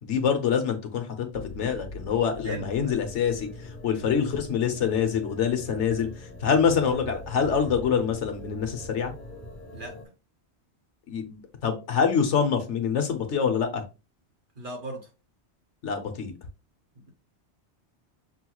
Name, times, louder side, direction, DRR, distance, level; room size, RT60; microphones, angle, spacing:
voice 1, 0.0-3.5 3.8-6.1 6.4-9.1 11.1-13.8 15.8-16.3, left 7 dB, 90° left, 1.2 m, -25 dB
sound 1, 1.3-10.1, left 1 dB, 45° left, 1.6 m, -42 dB
voice 2, 2.4-3.0 9.7-10.0 14.5-15.1 17.0-17.1, right 1 dB, 45° right, 1.4 m, -38 dB
6.5 x 2.3 x 3.0 m
omnidirectional pair, 1.2 m